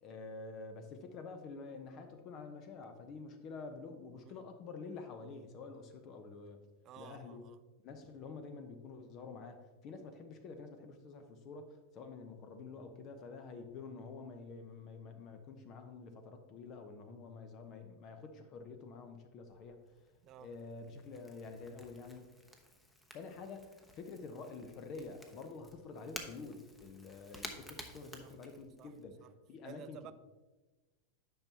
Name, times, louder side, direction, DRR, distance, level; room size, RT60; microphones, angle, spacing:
voice 1, 0.0-6.6 7.0-7.4 7.8-19.8 20.4-22.3 23.1-30.1, left 4 dB, 40° left, 0.7 m, -48 dB
voice 2, 6.8-7.6 20.2-20.5 28.8-28.9 29.6-30.1, right 10 dB, 40° right, 0.5 m, -52 dB
Crackle / Crack, 19.5-29.0, left 1 dB, 10° left, 1.0 m, -53 dB
10.0 x 5.6 x 2.8 m
figure-of-eight pair, 90°, 0 cm